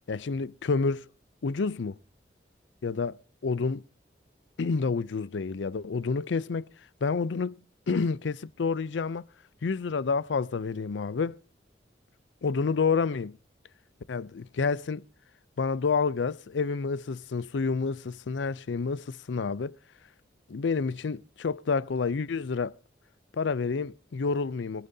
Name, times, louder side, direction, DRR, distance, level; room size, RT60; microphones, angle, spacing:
voice 1, 0.1-1.1 1.4-2.0 2.8-3.8 4.6-6.7 7.0-7.6 7.9-9.2 9.6-11.4 12.4-13.4 14.1-15.1 15.6-19.8 20.5-22.7 23.3-24.9, left 4 dB, 85° left, 0.5 m, -29 dB
24.0 x 9.2 x 2.7 m
head